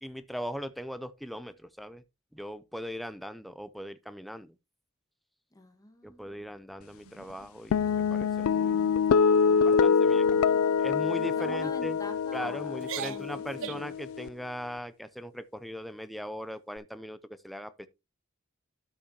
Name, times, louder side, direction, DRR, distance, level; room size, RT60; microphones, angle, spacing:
voice 1, 0.0-2.0 2.3-4.5 6.0-7.8 8.1-8.8 9.6-10.3 10.8-12.0 12.3-17.2 17.4-17.9, equal, ahead, 0.5 m, -39 dB
voice 2, 5.5-6.4 9.8-10.7 11.4-13.9, left 1 dB, 15° left, 1.5 m, -46 dB
sound 1, 7.0-7.6 8.1-8.3 8.7-9.0 9.3-9.7 10.3-10.7 11.2-11.3 12.1-12.4 12.8-14.0, right 9 dB, 65° right, 0.4 m, -42 dB
sound 2, 7.7-14.3, left 6 dB, 75° left, 0.3 m, -25 dB
12.5 x 5.5 x 2.8 m
head